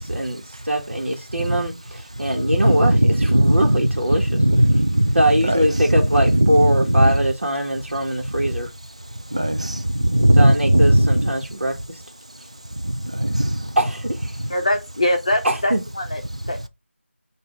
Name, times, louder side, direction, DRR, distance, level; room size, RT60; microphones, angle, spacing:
voice 1, 0.0-4.4 5.1-8.7 10.4-12.0 13.8-14.3 15.4-15.8, right 1 dB, 70° right, 1.2 m, -22 dB
voice 2, 2.5-3.8 4.3-5.2 5.5-5.6 6.3-7.1 9.3-11.3 12.8-13.7, right 1 dB, 30° right, 0.4 m, -17 dB
voice 3, 14.5-16.7, left 1 dB, 30° left, 0.8 m, -23 dB
5.0 x 2.6 x 3.8 m
figure-of-eight pair, 175°, 7 cm